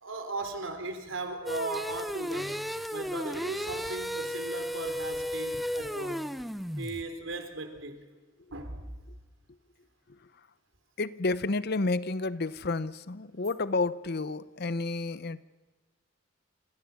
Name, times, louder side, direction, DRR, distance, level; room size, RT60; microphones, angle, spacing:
voice 1, 0.0-2.6 2.9-6.3 6.8-8.0 8.5-8.9, right 2 dB, 75° right, 3.8 m, -37 dB
sound 1, 1.5-7.0, equal, ahead, 0.8 m, -34 dB
voice 2, 11.0-15.4, left 3 dB, 55° left, 0.8 m, -30 dB
28.0 x 27.5 x 7.1 m
head